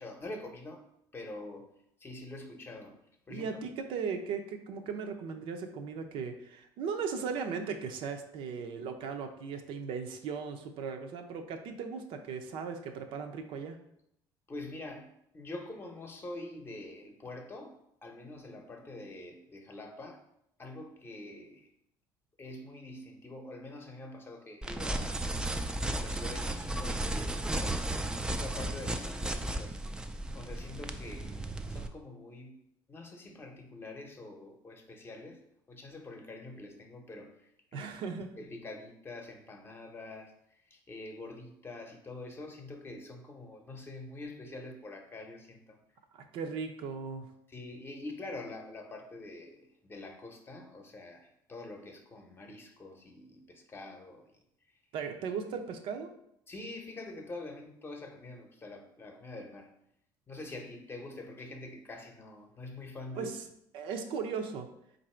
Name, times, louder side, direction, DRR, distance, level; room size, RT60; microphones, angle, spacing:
voice 1, 0.0-1.7 2.0-3.0 3.3-3.6 14.5-20.2 20.6-21.7 22.4-25.2 25.8-28.0 28.3-29.8 30.3-32.6 32.9-35.4 35.7-38.1 38.4-45.8 47.5-54.4 56.5-59.7 60.3-63.3, left 2 dB, 25° left, 3 dB, 0.7 m, -45 dB
voice 2, 3.3-13.8 37.7-38.3 46.1-47.3 54.9-56.1 63.1-63.4 63.7-64.7, right 5 dB, 70° right, 5 dB, 0.6 m, -37 dB
sound 1, 24.6-31.9, right 1 dB, 10° right, 0.3 m, -34 dB
4.0 x 2.6 x 4.3 m, 0.75 s
cardioid pair, 110°, 9 cm